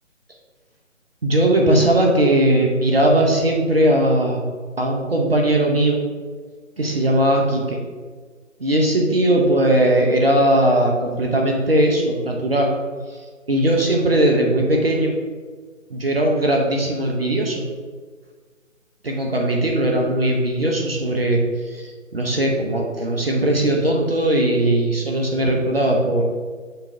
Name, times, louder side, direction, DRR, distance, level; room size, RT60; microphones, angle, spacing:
voice 1, 1.2-4.4 4.8-6.0 6.8-7.8 8.6-12.7 13.1-15.2 15.9-17.6 19.0-26.3, right 1 dB, 45° right, 0 dB, 0.8 m, -19 dB
6.8 x 2.9 x 5.5 m, 1.5 s
figure-of-eight pair, 155°, 41 cm